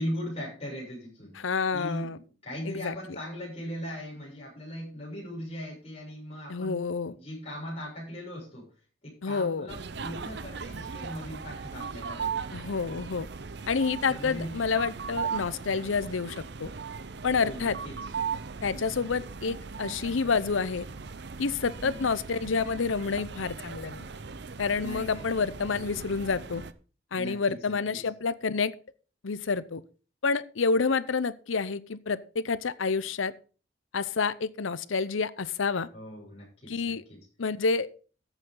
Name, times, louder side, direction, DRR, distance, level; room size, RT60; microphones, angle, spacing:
voice 1, 0.0-1.3 1.7-2.2 2.4-6.8 7.1-8.7 9.0-12.6 14.1-14.6 15.3-15.6 17.4-18.1 21.8-22.1 24.8-25.4 27.1-28.0 35.9-37.2, equal, 30° left, -3 dB, 7.0 m, -39 dB
voice 2, 1.4-2.2 2.7-2.9 6.5-7.2 9.2-9.7 12.5-13.3 13.7-16.7 17.2-17.8 18.6-20.8 21.4-24.0 24.6-26.6 27.1-28.7 29.2-29.8 30.2-33.3 33.9-35.9 36.7-37.0 37.4-37.9, left 4 dB, 80° left, 17 dB, 0.7 m, -28 dB
sound 1, 9.7-26.7, right 5 dB, 60° right, 0.7 m, -38 dB
13.5 x 8.3 x 3.8 m, 0.37 s
head